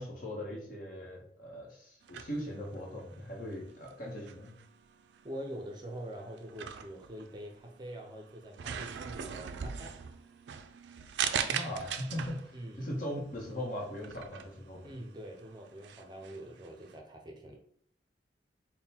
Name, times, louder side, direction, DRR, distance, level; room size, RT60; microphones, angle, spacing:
voice 1, 0.0-4.5 11.5-12.4 12.8-14.9, equal, 50° left, -1 dB, 1.1 m, -39 dB
sound 1, 2.0-17.0, right 8 dB, 85° right, 0.3 m, -41 dB
voice 2, 5.2-9.9 12.5-12.9 14.8-17.6, right 1 dB, 25° right, 2 dB, 0.5 m, -44 dB
3.7 x 2.2 x 4.3 m, 0.65 s
head